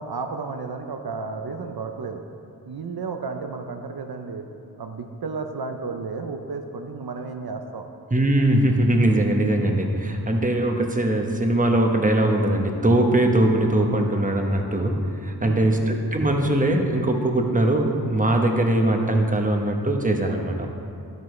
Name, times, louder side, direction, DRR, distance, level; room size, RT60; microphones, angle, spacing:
voice 1, 0.0-2.2 2.6-4.4 4.8-7.9 15.4-15.9, right 4 dB, 70° right, 5 dB, 0.7 m, -32 dB
voice 2, 8.1-14.9 15.2-20.7, right 1 dB, 20° right, 2 dB, 1.0 m, -21 dB
12.5 x 9.3 x 3.2 m, 2.7 s
wide cardioid pair, 80°, 39 cm